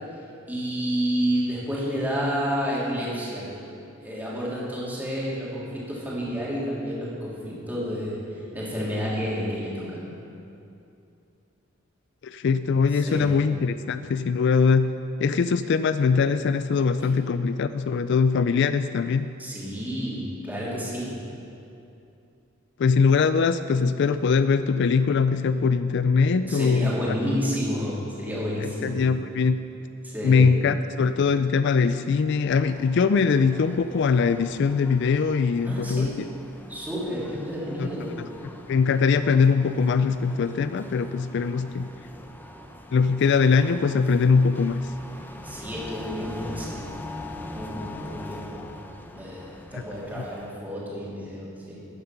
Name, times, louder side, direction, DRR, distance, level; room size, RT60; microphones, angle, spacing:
voice 1, 0.5-3.5 4.0-10.1 12.9-13.4 17.0-17.1 19.4-21.2 26.5-29.1 30.0-30.5 35.6-36.3 36.7-38.3 45.4-46.9 47.5-48.7 49.1-51.9, equal, 10° right, -7 dB, 3.1 m, -30 dB
voice 2, 12.2-19.3 22.8-26.9 28.6-29.6 30.2-36.1 37.8-37.9 38.7-41.9 42.9-44.9 49.7-49.8 50.2-50.3, left 5 dB, 60° left, 12 dB, 0.4 m, -22 dB
sound 1, 32.5-50.6, left 1 dB, 10° left, 0.7 m, -43 dB
14.0 x 9.4 x 5.9 m, 2.7 s
head